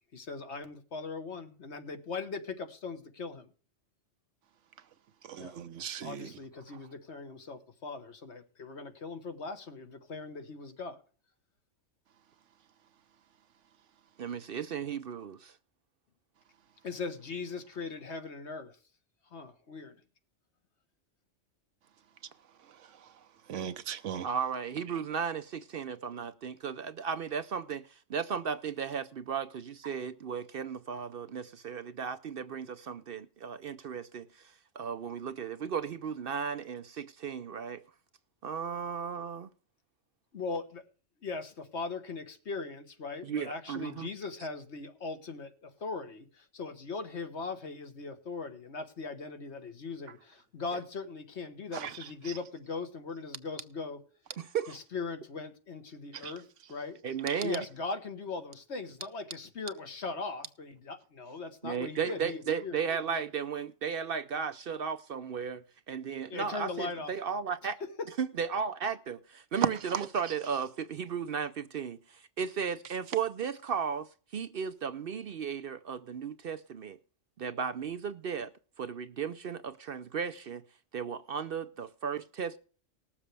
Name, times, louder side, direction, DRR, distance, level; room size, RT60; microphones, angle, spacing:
voice 1, 0.1-3.5 5.4-5.6 6.0-11.0 16.8-18.7 19.3-20.0 40.3-40.8 41.2-54.0 54.7-56.4 56.7-57.0 57.4-62.8 63.1-63.2 66.3-67.1 67.8-67.9, left 4 dB, 65° left, 1.6 m, -39 dB
voice 2, 5.3-6.3 23.5-24.3 51.7-51.9 52.2-52.3 56.2-56.3 57.3-57.4 69.9-70.1, right 8 dB, 75° right, 1.1 m, -38 dB
voice 3, 14.2-15.5 24.2-37.8 38.4-39.5 43.2-44.1 54.4-54.7 57.0-57.6 61.6-67.8 68.2-77.0 77.4-78.5 78.8-80.6 80.9-82.6, right 6 dB, 55° right, 0.7 m, -35 dB
20.0 x 7.2 x 3.3 m
omnidirectional pair, 1.3 m